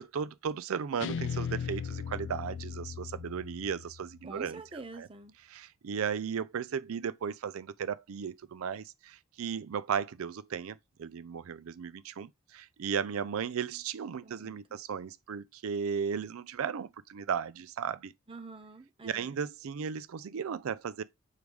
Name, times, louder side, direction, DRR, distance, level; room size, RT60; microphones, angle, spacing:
voice 1, 0.0-4.6 5.5-18.1 19.0-21.0, right 7 dB, 85° right, 0.4 m, -35 dB
Guitar, 1.0-4.2, left 6 dB, 60° left, 0.4 m, -37 dB
voice 2, 4.2-5.4 13.1-13.4 14.0-14.8 18.3-19.4, right 3 dB, 25° right, 0.7 m, -47 dB
6.5 x 4.7 x 3.5 m
head